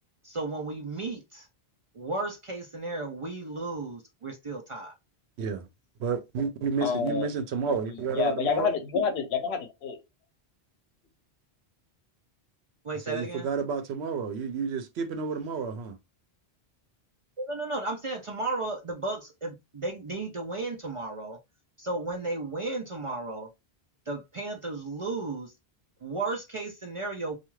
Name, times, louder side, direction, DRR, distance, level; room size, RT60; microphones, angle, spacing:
voice 1, 0.2-1.5 1.9-4.9 12.8-13.5 17.4-21.4 21.8-23.5 24.1-25.5 26.0-27.4, right 2 dB, 50° right, 0.4 m, -34 dB
voice 2, 6.0-8.7 13.1-16.0, right 5 dB, 85° right, 0.9 m, -30 dB
voice 3, 6.8-7.3 8.1-10.0, left 5 dB, 75° left, 0.9 m, -28 dB
2.4 x 2.3 x 3.0 m
omnidirectional pair, 1.1 m